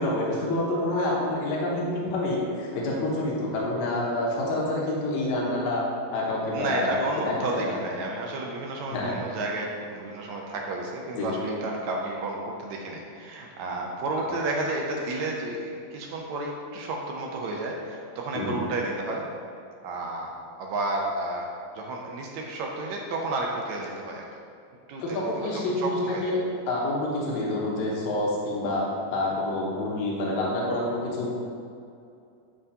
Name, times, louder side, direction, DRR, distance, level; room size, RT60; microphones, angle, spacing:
voice 1, 0.0-5.8 6.1-6.9 7.2-7.8 8.9-9.2 11.1-11.3 18.3-18.6 25.0-26.4 26.7-28.8 29.1-31.3, left 2 dB, 70° left, -3 dB, 2.2 m, -27 dB
voice 2, 6.5-19.2 19.8-21.5 21.8-24.2 24.9-26.3, right 2 dB, 75° right, -1 dB, 1.8 m, -31 dB
11.0 x 3.7 x 2.7 m, 2.5 s
omnidirectional pair, 3.6 m